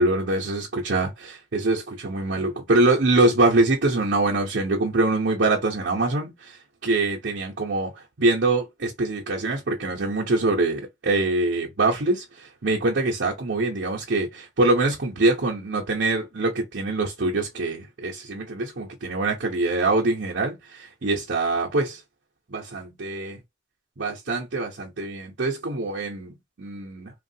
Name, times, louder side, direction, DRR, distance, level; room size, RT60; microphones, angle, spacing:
voice 1, 0.0-22.0 22.5-23.4 24.0-27.2, right 2 dB, 85° right, 0.8 m, -24 dB
3.1 x 2.4 x 2.7 m
head